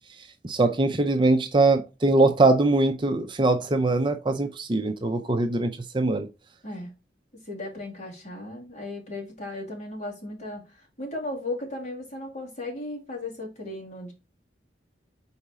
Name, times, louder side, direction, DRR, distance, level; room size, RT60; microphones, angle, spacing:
voice 1, 0.4-6.3, right 2 dB, 25° right, 0.5 m, -22 dB
voice 2, 7.4-14.1, left 2 dB, 40° left, 2.6 m, -36 dB
4.7 x 4.3 x 4.9 m
head